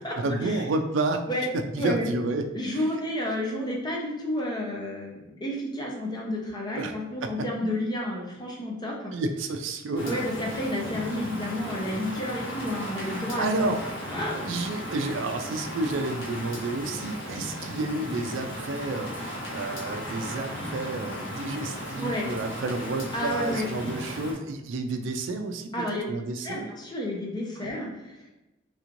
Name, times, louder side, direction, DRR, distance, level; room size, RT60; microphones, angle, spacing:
voice 1, 0.2-1.2 1.5-2.5 2.8-2.9 6.8-6.9 7.2-7.3 9.1-10.2 13.0-13.8 14.4-25.7 26.1-26.6 27.6-27.7, right 2 dB, 70° right, 6 dB, 0.4 m, -30 dB
voice 2, 1.8-2.1 2.5-9.1 10.1-13.8 14.1-14.4 22.0-22.3 23.1-23.7 25.7-26.0 26.4-28.3, left 1 dB, 20° left, -2 dB, 0.7 m, -31 dB
Rain, 9.9-24.3, left 1 dB, 75° left, 1.0 m, -36 dB
3.4 x 3.0 x 2.5 m, 0.97 s
head